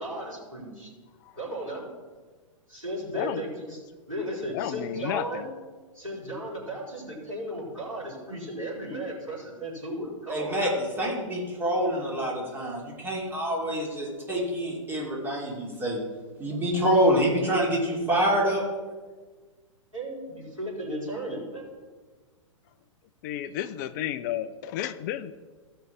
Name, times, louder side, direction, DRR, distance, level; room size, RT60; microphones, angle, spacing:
voice 1, 0.0-0.9 1.4-1.8 2.7-3.8 4.1-5.5 5.9-10.7 19.9-21.6, right 1 dB, 90° right, -5 dB, 4.1 m, -35 dB
voice 2, 3.1-3.4 4.5-5.5 23.2-25.3, left 11 dB, 35° left, 14 dB, 0.5 m, -32 dB
voice 3, 10.3-16.0 16.4-18.6, equal, 10° right, -3 dB, 2.8 m, -26 dB
15.0 x 5.6 x 5.8 m, 1.4 s
figure-of-eight pair, 110°, 17 cm